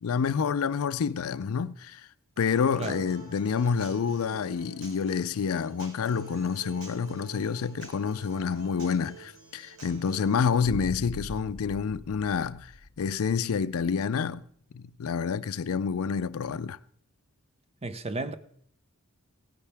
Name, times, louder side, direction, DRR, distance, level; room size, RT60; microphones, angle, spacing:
voice 1, 0.0-2.1 2.4-12.7 13.0-14.4 14.7-16.8, left 6 dB, 70° left, 0.4 m, -28 dB
Human voice / Acoustic guitar, 2.4-10.3, right 4 dB, 80° right, 3.7 m, -47 dB
Boom, 10.6-13.6, left 2 dB, 55° left, 0.9 m, -42 dB
voice 2, 17.8-18.3, right 2 dB, 30° right, 0.6 m, -33 dB
16.5 x 10.0 x 3.4 m
head